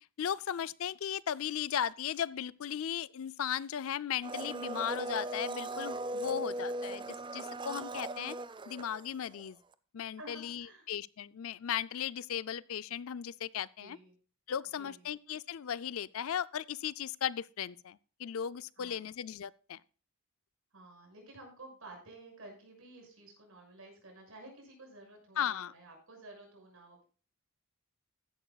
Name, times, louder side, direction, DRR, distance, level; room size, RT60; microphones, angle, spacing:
voice 1, 0.2-7.0 7.3-8.4 8.7-9.6 9.9-14.0 14.5-19.8 25.4-25.7, left 9 dB, 65° left, 0.4 m, -36 dB
Domestic sounds home sounds, 4.2-9.5 9.7-9.8, right 2 dB, 20° right, 0.5 m, -39 dB
voice 2, 10.2-10.9 13.8-14.1 14.8-15.1 18.8-19.1 20.7-27.0, right 2 dB, 65° right, 6.5 m, -53 dB
15.0 x 11.0 x 2.3 m
head